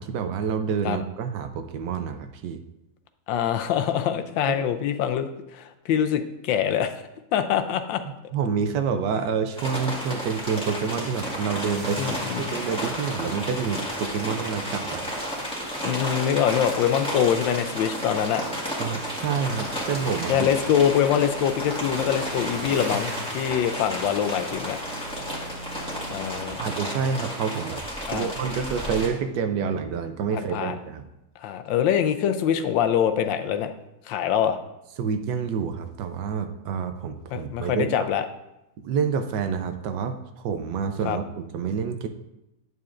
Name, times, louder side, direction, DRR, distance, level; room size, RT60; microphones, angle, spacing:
voice 1, 0.0-2.6 4.5-4.7 8.3-15.1 18.8-20.5 26.6-27.8 28.1-31.1 35.0-38.1 38.8-42.1, right 6 dB, 75° right, 8 dB, 1.1 m, -28 dB
voice 2, 3.3-5.3 5.5-7.0 7.3-8.0 12.0-12.5 15.8-18.4 20.3-24.8 26.1-26.6 28.1-28.3 30.3-30.7 31.4-33.7 34.1-34.6 37.3-38.3 41.0-41.2, left 9 dB, 80° left, 8 dB, 1.3 m, -24 dB
sound 1, 9.6-29.1, equal, 5° left, 1.5 m, -32 dB
sound 2, 11.1-26.3 26.6-26.7, right 1 dB, 25° right, 0.5 m, -43 dB
sound 3, 19.2-22.7 23.0-23.1 23.7-26.5, equal, 40° left, 1.6 m, -44 dB
9.4 x 6.9 x 2.5 m, 0.91 s
omnidirectional pair, 2.0 m